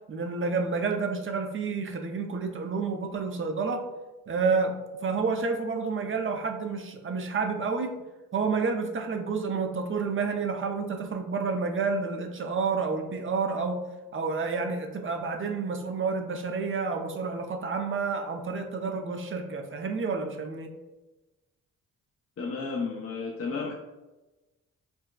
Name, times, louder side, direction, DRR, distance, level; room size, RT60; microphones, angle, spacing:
voice 1, 0.1-3.8 4.3-4.7 5.0-7.9 8.3-13.8 14.1-20.7, right 4 dB, 35° right, 3 dB, 0.5 m, -29 dB
voice 2, 22.4-23.7, left 4 dB, 40° left, -1 dB, 0.6 m, -32 dB
4.0 x 2.2 x 2.3 m, 1.1 s
supercardioid pair, 55°, 36 cm